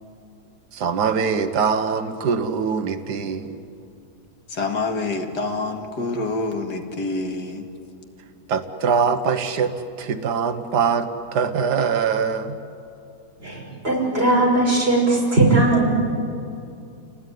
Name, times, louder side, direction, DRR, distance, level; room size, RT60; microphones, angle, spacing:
voice 1, 0.7-3.6 8.5-12.6, right 6 dB, 90° right, 9 dB, 1.7 m, -23 dB
voice 2, 4.5-7.7, left 3 dB, 90° left, 4 dB, 2.5 m, -27 dB
voice 3, 13.4-15.9, right 2 dB, 35° right, -2 dB, 6.3 m, -19 dB
29.5 x 19.0 x 9.4 m, 2.6 s
omnidirectional pair, 1.7 m